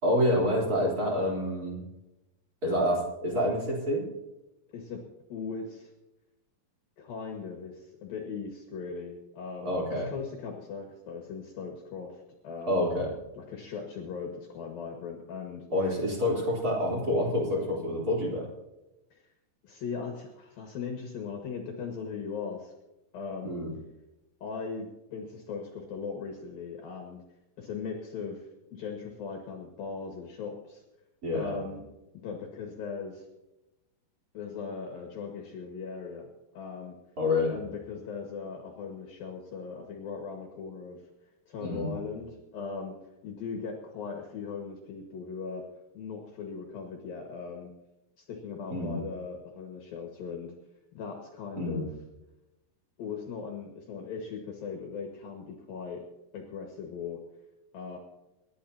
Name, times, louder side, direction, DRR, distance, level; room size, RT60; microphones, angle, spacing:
voice 1, 0.0-1.8 2.6-4.0 9.6-10.1 12.7-13.1 15.7-18.5 23.4-23.8 31.2-31.6 37.2-37.6 41.6-42.0 48.7-49.0 51.6-51.9, left 1 dB, 20° right, -3 dB, 3.6 m, -27 dB
voice 2, 4.7-5.0 5.3-5.9 7.0-12.8 13.4-15.7 19.1-19.2 19.6-22.7 23.1-23.5 24.4-27.2 27.6-30.8 31.3-31.8 32.2-33.3 34.3-37.0 37.5-41.0 41.5-42.9 43.2-45.6 45.9-47.7 48.2-50.5 50.9-51.9 53.0-56.0 56.3-57.2 57.7-58.0, left 5 dB, 60° left, 1 dB, 3.2 m, -39 dB
28.0 x 11.5 x 2.9 m, 0.96 s
omnidirectional pair, 5.0 m